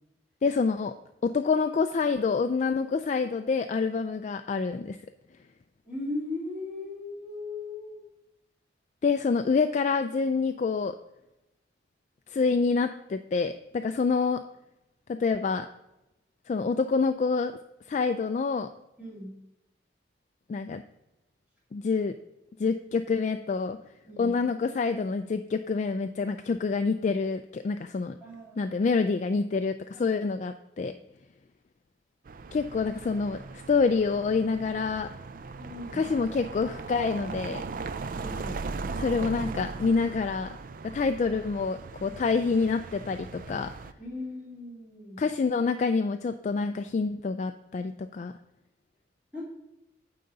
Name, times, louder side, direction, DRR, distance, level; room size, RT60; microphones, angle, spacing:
voice 1, 0.4-0.9 1.2-5.0 9.0-11.0 12.3-14.4 15.1-15.7 16.5-17.5 17.9-18.7 20.5-20.8 21.7-22.1 22.6-23.8 24.2-28.2 28.6-30.9 32.5-33.4 33.7-35.1 35.9-37.6 39.0-40.5 40.9-43.7 45.2-48.3, left 4 dB, 40° left, 8 dB, 0.3 m, -27 dB
voice 2, 5.8-8.0 19.0-19.3 24.1-24.3 28.2-28.7 29.9-30.0 35.6-36.0 38.1-38.7 44.0-45.2 49.3-49.4, left 2 dB, 10° right, -7 dB, 2.9 m, -38 dB
sound 1, 32.3-43.9, right 4 dB, 50° right, 0.4 m, -39 dB
9.2 x 3.8 x 6.8 m, 0.91 s
head